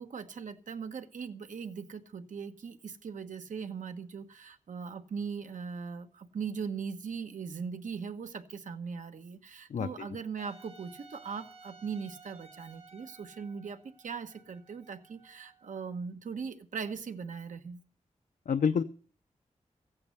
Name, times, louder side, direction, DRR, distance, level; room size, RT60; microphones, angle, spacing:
voice 1, 0.0-17.8, right 6 dB, 85° right, 7 dB, 1.2 m, -40 dB
voice 2, 9.7-10.1 18.5-18.8, left 6 dB, 85° left, 10 dB, 0.6 m, -28 dB
Wind instrument woodwind instrument, 10.4-16.0, right 4 dB, 50° right, 3.1 m, -56 dB
15.0 x 8.9 x 6.8 m, 0.41 s
wide cardioid pair, 125°, 13 cm